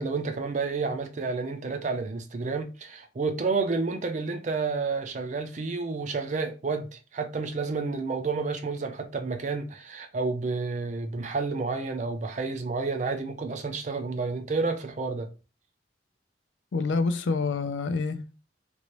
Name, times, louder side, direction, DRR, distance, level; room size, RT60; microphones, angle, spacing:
voice 1, 0.0-15.3, right 4 dB, 40° right, 0.4 m, -30 dB
voice 2, 16.7-18.4, left 4 dB, 80° left, 0.4 m, -27 dB
3.0 x 2.6 x 3.0 m
head